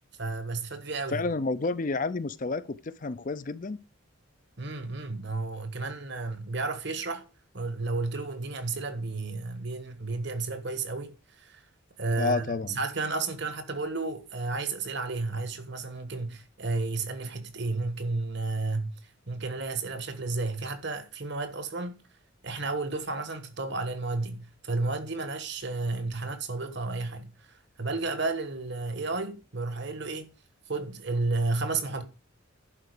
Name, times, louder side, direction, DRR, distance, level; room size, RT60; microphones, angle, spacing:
voice 1, 0.2-1.3 4.6-7.3 7.5-11.6 12.0-22.0 22.4-30.3 30.7-32.0, right 3 dB, 55° right, 1.3 m, -32 dB
voice 2, 1.1-3.8 12.2-12.8, left 3 dB, 40° left, 0.5 m, -30 dB
11.0 x 4.6 x 6.6 m
head